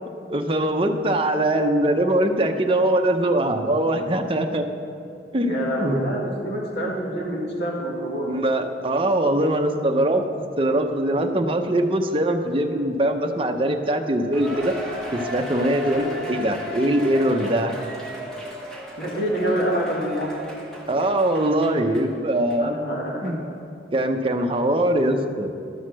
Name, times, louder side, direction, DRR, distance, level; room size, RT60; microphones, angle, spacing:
voice 1, 0.3-4.6 5.3-6.1 8.2-14.7 15.1-17.7 20.9-22.8 23.2-23.4 23.9-25.5, right 1 dB, 30° right, 4 dB, 0.7 m, -22 dB
voice 2, 5.4-8.3 15.8-16.1 19.0-20.4 22.6-23.3, right 1 dB, 60° left, -3 dB, 2.0 m, -27 dB
Cheering, 14.3-22.1 22.5-22.6 23.2-23.3, equal, 5° left, 1.2 m, -34 dB
13.0 x 6.5 x 6.2 m, 2.6 s
head